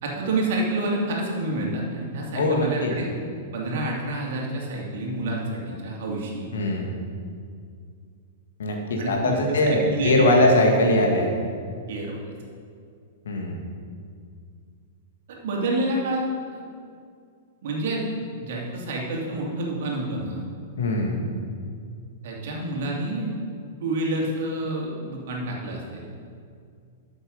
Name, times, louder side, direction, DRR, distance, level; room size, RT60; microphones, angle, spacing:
voice 1, 0.0-3.1 3.5-6.5 9.0-10.3 11.9-12.3 15.3-16.2 16.5-16.6 17.6-20.5 22.2-23.4 23.8-26.1, right 2 dB, 55° right, -2 dB, 2.5 m, -28 dB
voice 2, 2.4-3.0 6.5-6.9 8.6-11.3 13.3-13.6 20.8-21.3, left 1 dB, 65° left, 2 dB, 1.9 m, -21 dB
12.5 x 7.3 x 5.3 m, 2.3 s
figure-of-eight pair, 100°, 0 cm